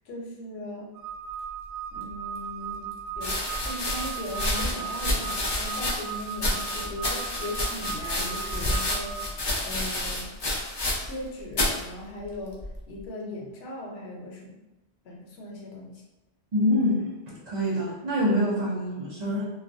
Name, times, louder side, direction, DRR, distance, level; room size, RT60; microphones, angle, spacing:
voice 1, 0.1-0.9 1.9-9.2 9.6-10.3 11.0-12.6 12.9-14.6 15.0-16.0, left 1 dB, 75° left, -2 dB, 0.9 m, -38 dB
sound 1, 0.9-9.3, right 8 dB, 90° right, 0.9 m, -37 dB
sound 2, 2.1-2.2 3.1-11.2 11.5-11.8 12.6-13.0, left 1 dB, 45° left, 0.3 m, -29 dB
voice 2, 16.5-19.4, left 1 dB, 45° right, -7 dB, 0.7 m, -26 dB
2.3 x 2.2 x 2.5 m, 1.0 s
omnidirectional pair, 1.1 m